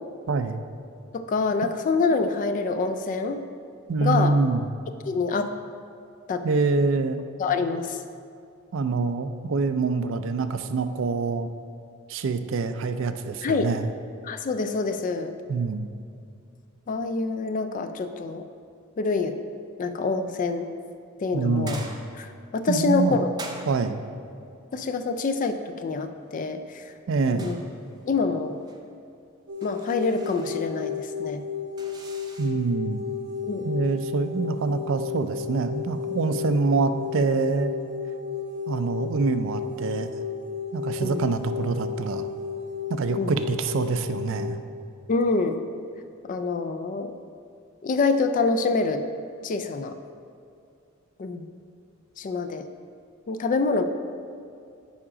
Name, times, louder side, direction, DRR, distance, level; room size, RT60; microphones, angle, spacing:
voice 1, 0.3-0.6 3.9-4.7 6.4-7.2 8.7-11.5 12.1-13.9 15.5-15.9 21.3-21.9 22.7-23.2 23.7-24.0 27.1-27.5 32.4-33.0 33.6-37.7 38.7-40.1 40.7-42.3 42.9-44.6, right 4 dB, 65° right, 10 dB, 0.4 m, -25 dB
voice 2, 1.1-3.5 4.0-4.4 5.1-5.5 6.3-6.4 7.4-8.0 13.4-13.7 14.2-15.3 16.9-18.5 19.0-19.4 19.8-20.7 21.2-21.8 22.2-22.3 22.5-23.3 24.7-26.9 27.3-27.6 28.1-28.6 29.6-31.4 33.4-33.8 41.0-41.2 43.2-43.3 45.1-45.6 46.3-47.1 47.8-49.0 49.4-50.0 51.2-51.5 52.2-52.7 53.3-53.8, left 4 dB, 40° left, 8 dB, 0.3 m, -26 dB
sound 1, 21.7-22.4 23.4-24.1 27.4-28.1 28.4-28.8 29.6-30.7 31.8-32.7, right 2 dB, 20° right, 0.6 m, -43 dB
sound 2, 29.5-44.5, left 6 dB, 80° right, 1.0 m, -33 dB
7.2 x 4.9 x 4.9 m, 2.4 s
head